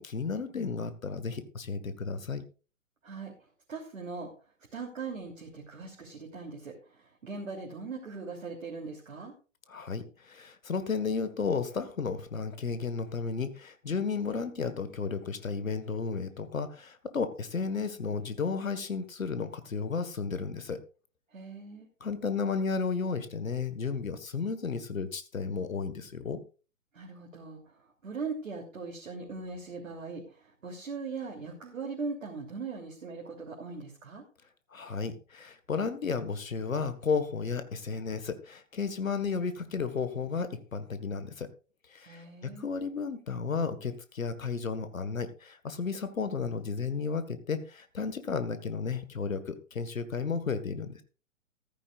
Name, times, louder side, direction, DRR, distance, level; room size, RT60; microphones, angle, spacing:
voice 1, 0.0-2.4 9.7-20.8 22.0-26.4 34.7-41.5 41.9-51.0, left 5 dB, 75° left, 11 dB, 1.7 m, -33 dB
voice 2, 3.7-4.3 4.7-9.3 21.3-21.9 26.9-34.2 42.0-42.7, right 4 dB, 70° right, 0 dB, 3.2 m, -40 dB
14.5 x 14.0 x 2.5 m, 0.35 s
figure-of-eight pair, 120°, 40 cm